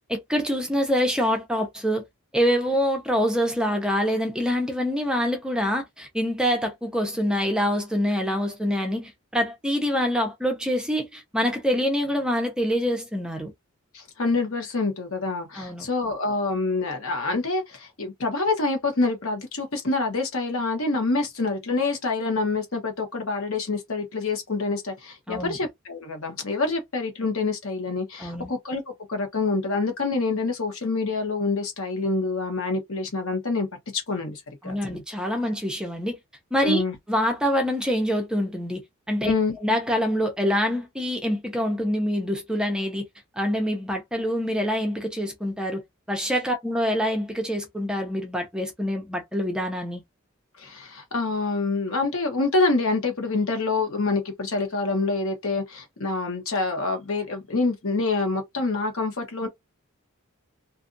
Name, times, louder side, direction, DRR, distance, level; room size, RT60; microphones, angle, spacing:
voice 1, 0.1-2.0 2.3-13.5 15.5-15.9 25.3-25.6 28.2-28.5 34.6-36.2 36.5-36.8 37.1-39.3 39.6-43.1 43.4-45.8 46.1-50.0, equal, 5° right, 0.5 m, -25 dB
voice 2, 13.9-28.8 29.1-33.7 33.9-35.0 36.6-37.0 39.2-39.6 50.6-59.5, left 3 dB, 75° left, 1.1 m, -26 dB
2.5 x 2.4 x 2.5 m
head